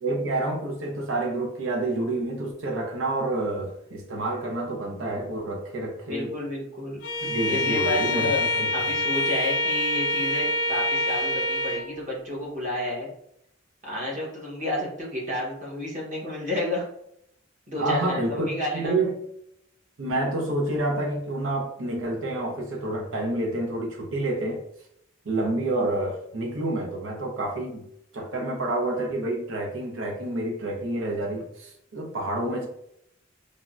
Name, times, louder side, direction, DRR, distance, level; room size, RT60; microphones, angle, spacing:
voice 1, 0.0-6.3 7.2-8.7 17.8-19.2 20.0-24.6 25.2-27.9 28.1-32.7, right 2 dB, 80° right, 1 dB, 0.6 m, -28 dB
voice 2, 6.1-7.0 7.5-8.4 8.7-13.1 13.8-16.9 17.7-18.9, left 1 dB, 40° right, -4 dB, 1.0 m, -30 dB
Bowed string instrument, 7.0-11.9, left 2 dB, 85° left, 0.3 m, -26 dB
3.3 x 2.1 x 2.4 m, 0.75 s
head